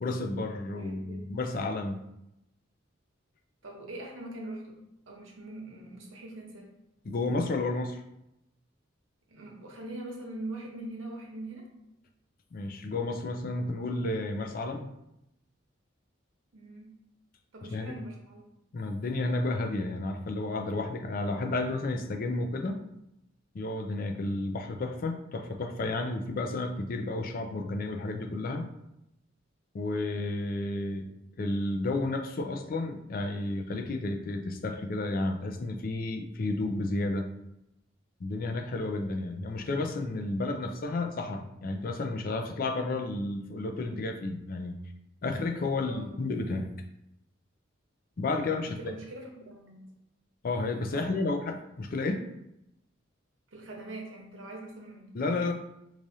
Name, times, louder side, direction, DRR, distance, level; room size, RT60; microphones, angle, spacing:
voice 1, 0.0-2.0 7.1-8.0 12.5-14.9 17.6-17.9 18.7-22.8 23.5-28.7 29.7-31.1 31.4-37.3 38.2-44.8 45.2-46.7 48.2-48.9 50.4-52.2 55.1-55.5, left 2 dB, 50° left, 5 dB, 0.4 m, -32 dB
voice 2, 0.8-1.3 3.6-4.8 5.1-6.7 9.3-11.7 16.5-17.0 17.5-18.5 39.1-39.4 45.8-46.2 48.6-49.8 50.9-51.1 53.5-55.1, right 2 dB, 85° right, 0 dB, 0.9 m, -43 dB
4.7 x 2.4 x 2.7 m, 0.84 s
head